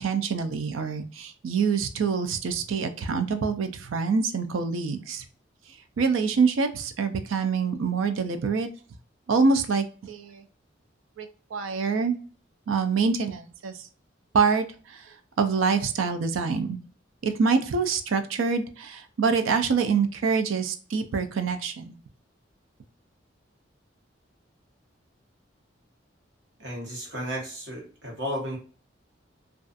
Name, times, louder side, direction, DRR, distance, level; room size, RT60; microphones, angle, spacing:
voice 1, 0.0-5.2 6.0-8.7 9.3-10.4 11.2-12.2 12.7-13.9 14.3-16.8 17.2-22.0, right 5 dB, 85° right, 8 dB, 0.4 m, -26 dB
voice 2, 26.6-28.6, equal, 65° right, -2 dB, 1.1 m, -33 dB
2.3 x 2.3 x 2.5 m, 0.39 s
head